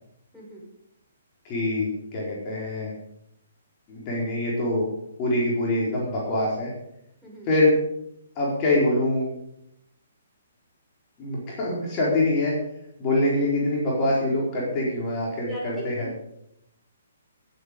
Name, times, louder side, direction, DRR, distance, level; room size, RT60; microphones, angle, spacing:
voice 1, 0.3-0.6 7.2-7.5 15.5-16.2, equal, ahead, -6 dB, 6.0 m, -38 dB
voice 2, 1.4-2.9 3.9-4.9 5.2-6.7 7.4-7.8 8.4-9.3 11.2-12.5 13.0-16.1, left 2 dB, 30° left, -4 dB, 4.3 m, -24 dB
19.5 x 8.4 x 5.3 m, 0.78 s
figure-of-eight pair, 125°, 0 cm